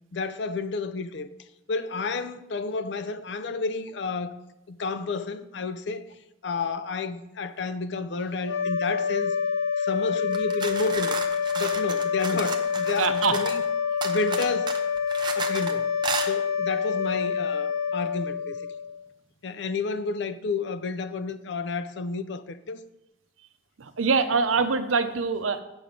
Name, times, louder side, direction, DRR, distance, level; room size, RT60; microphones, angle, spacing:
voice 1, 0.1-4.4 4.7-6.1 6.4-9.3 9.8-11.2 11.6-13.6 14.0-14.8 15.3-15.9 16.3-18.6 19.4-22.8, left 4 dB, 60° left, 0.5 m, -31 dB
sound 1, 8.4-19.0, left 6 dB, 85° left, 1.1 m, -27 dB
sound 2, 10.3-13.6 14.0-15.7 16.0-16.3, right 4 dB, 20° right, 0.6 m, -33 dB
voice 2, 13.0-13.4 23.8-25.6, right 5 dB, 85° right, 0.7 m, -24 dB
8.5 x 6.2 x 5.1 m
head